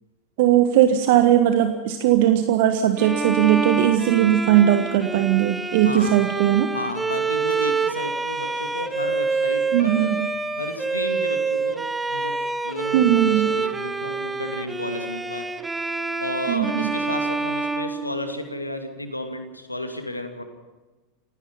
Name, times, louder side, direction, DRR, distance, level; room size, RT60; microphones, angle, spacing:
voice 1, 0.4-6.7 9.7-10.3 12.9-13.5 16.5-16.9, right 11 dB, 55° right, 8 dB, 1.4 m, -19 dB
Bowed string instrument, 3.0-18.7, right 4 dB, 10° right, 1.2 m, -27 dB
voice 2, 5.8-6.1 6.7-10.1 10.6-12.3 12.6-15.8 16.2-20.4, left 1 dB, 90° left, 6 dB, 2.6 m, -32 dB
29.0 x 17.0 x 5.7 m, 1.2 s
figure-of-eight pair, 85°, 0 cm